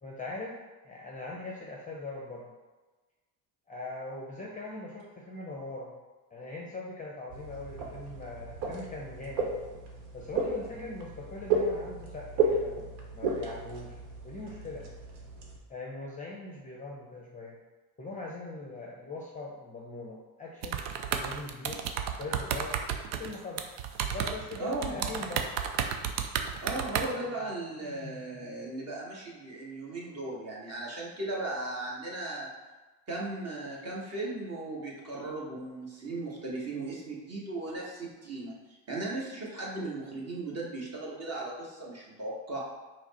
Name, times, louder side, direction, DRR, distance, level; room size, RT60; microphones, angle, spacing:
voice 1, 0.0-0.5 0.8-2.5 3.7-5.9 6.3-9.5 10.1-14.0 14.2-14.8 15.7-17.6 18.0-20.8 21.2-21.8 22.2-22.7 23.2-23.7 24.1-25.5 26.9-27.1 27.8-28.5, left 2 dB, 15° left, -3 dB, 0.7 m, -41 dB
sound 1, 7.3-15.6, right 3 dB, 60° right, 1.1 m, -33 dB
sound 2, 20.6-27.1, right 8 dB, 85° right, 0.6 m, -32 dB
voice 2, 24.6-25.0 26.6-32.5 33.1-38.5 38.9-42.6, right 2 dB, 30° right, -3 dB, 1.3 m, -37 dB
4.8 x 2.1 x 4.1 m, 1.2 s
supercardioid pair, 90°, 49 cm